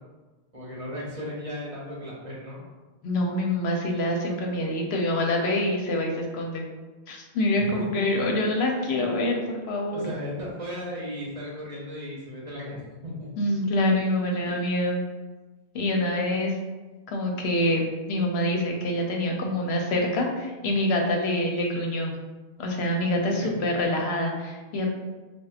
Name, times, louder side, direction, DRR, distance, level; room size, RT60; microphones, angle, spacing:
voice 1, 0.5-2.6 7.6-8.0 8.7-9.2 9.9-13.3 14.4-14.6 23.3-23.5, equal, 40° right, -5 dB, 0.7 m, -36 dB
voice 2, 3.0-6.6 7.1-10.1 13.4-15.0 15.7-16.6 17.1-17.8 18.1-22.2 22.6-24.9, left 1 dB, 90° left, 1 dB, 0.9 m, -26 dB
4.3 x 2.1 x 2.3 m, 1.2 s
omnidirectional pair, 1.1 m